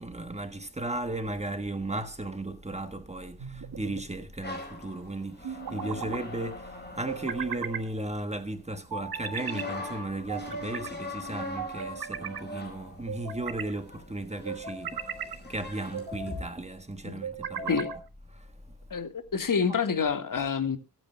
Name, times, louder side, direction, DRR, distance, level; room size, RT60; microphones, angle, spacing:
voice 1, 0.0-18.0 18.3-18.7 19.7-19.8, right 2 dB, 15° right, 1.4 m, -36 dB
sound 1, 3.4-4.1 5.4-6.2 7.1-7.9 8.9-9.7 10.3-10.9 11.6-12.4 13.1-13.7 14.5-15.4 15.9-16.5 17.2-18.0, right 6 dB, 65° right, 1.6 m, -37 dB
sound 2, 4.4-8.4 9.3-16.4, left 2 dB, 25° left, 4.9 m, -41 dB
voice 2, 18.9-20.8, left 6 dB, 55° left, 1.8 m, -28 dB
23.0 x 9.1 x 2.3 m
cardioid pair, 95°, 40 cm